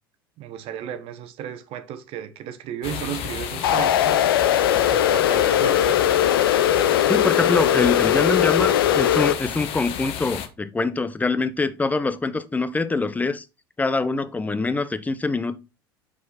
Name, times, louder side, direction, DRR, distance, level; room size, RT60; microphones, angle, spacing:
voice 1, 0.4-4.2 4.4-5.8, right 10 dB, 50° right, 1.1 m, -34 dB
sound 1, 2.8-10.5, left 9 dB, 55° left, 1.1 m, -32 dB
sound 2, 3.6-9.3, left 10 dB, 75° left, 0.6 m, -19 dB
voice 2, 7.1-13.5 13.8-15.6, left 3 dB, 15° left, 0.7 m, -24 dB
6.1 x 4.9 x 4.2 m
hypercardioid pair, 75°, 12 cm